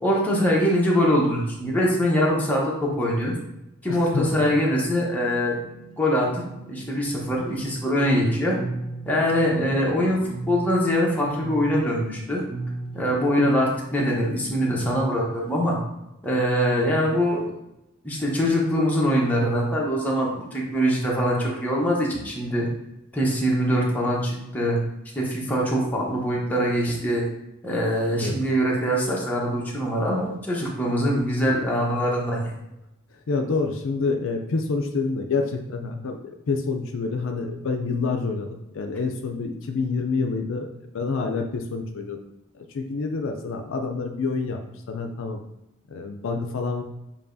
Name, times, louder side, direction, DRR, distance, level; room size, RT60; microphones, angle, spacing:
voice 1, 0.0-3.4 3.8-5.6 6.0-8.6 9.1-10.2 10.5-12.4 12.9-15.8 16.2-17.5 18.0-22.7 23.1-24.8 25.1-27.2 27.6-32.5, equal, 10° left, -4 dB, 0.9 m, -23 dB
voice 2, 3.9-4.5 28.2-28.4 33.3-42.2 42.5-44.6 44.9-45.4 45.9-46.8, left 4 dB, 65° left, 4 dB, 0.4 m, -27 dB
sound 1, 4.6-15.0, right 2 dB, 25° right, 0.6 m, -39 dB
6.9 x 2.8 x 2.6 m, 0.90 s
head